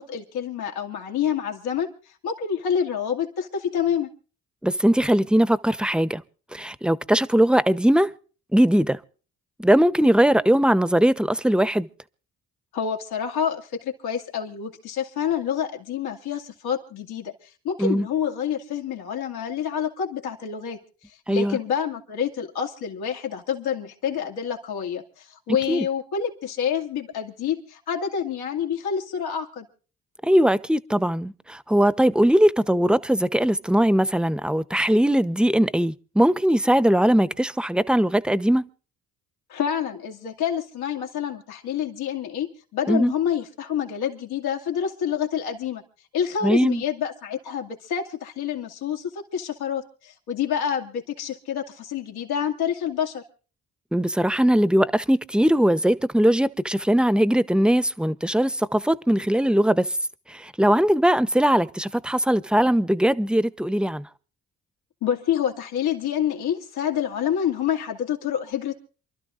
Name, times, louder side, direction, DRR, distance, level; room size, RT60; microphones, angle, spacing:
voice 1, 0.0-4.1 12.7-17.3 17.6-29.7 39.5-42.5 42.7-45.8 46.1-53.2 65.0-68.8, left 8 dB, 80° left, 2.5 m, -28 dB
voice 2, 4.6-6.2 6.5-8.1 8.5-9.0 9.6-11.9 17.8-18.1 21.3-21.6 25.7-25.9 30.2-38.7 42.9-43.1 46.4-46.8 53.9-59.9 60.3-64.1, equal, ahead, 0.8 m, -20 dB
28.0 x 12.5 x 2.6 m
supercardioid pair, 60°, 37 cm